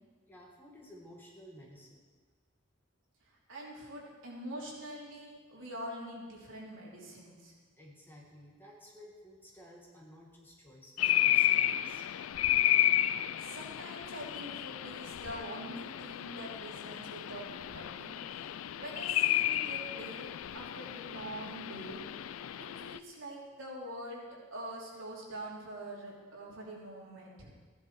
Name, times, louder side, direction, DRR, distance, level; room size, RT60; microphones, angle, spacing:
voice 1, 0.3-2.0 7.8-12.0, equal, 10° left, -3 dB, 1.9 m, -54 dB
voice 2, 3.5-7.5 13.1-18.5 18.7-22.0 22.6-27.5, right 1 dB, 75° right, -3 dB, 3.2 m, -45 dB
sound 1, 11.0-23.0, left 12 dB, 90° left, 0.4 m, -32 dB
15.5 x 10.5 x 4.7 m, 1.4 s
head